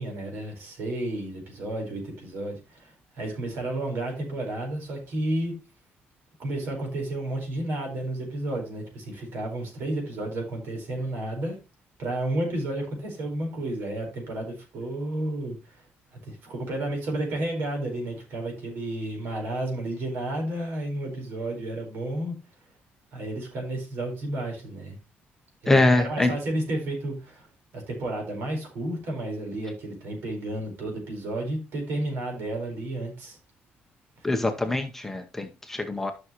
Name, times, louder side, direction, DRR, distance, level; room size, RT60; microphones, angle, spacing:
voice 1, 0.0-5.5 6.4-11.6 12.0-15.8 16.1-22.3 23.1-25.0 25.6-27.5 27.7-33.4 34.2-34.3, right 1 dB, 65° right, 4.5 m, -32 dB
voice 2, 25.7-26.3 34.2-36.1, left 2 dB, 10° left, 0.7 m, -23 dB
12.5 x 6.1 x 3.0 m
cardioid pair, 175°, 4 cm